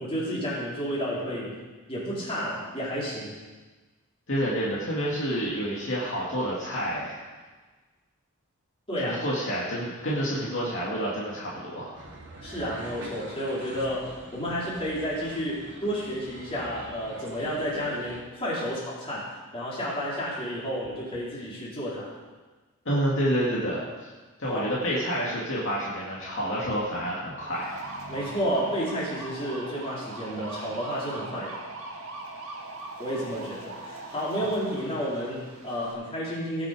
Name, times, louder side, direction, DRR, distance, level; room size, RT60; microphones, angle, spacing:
voice 1, 0.0-1.5 1.9-3.3 8.9-9.2 12.4-22.1 24.5-24.6 28.1-31.6 33.0-36.7, equal, 25° left, -7 dB, 3.9 m, -31 dB
voice 2, 4.3-7.2 9.0-12.0 22.8-24.1 24.4-27.8, equal, 60° left, -6 dB, 2.3 m, -29 dB
sound 1, 11.9-18.2, right 2 dB, 55° right, 2.3 m, -44 dB
sound 2, 27.4-35.9, right 2 dB, 70° right, 1.9 m, -40 dB
18.5 x 6.5 x 5.0 m, 1.3 s
head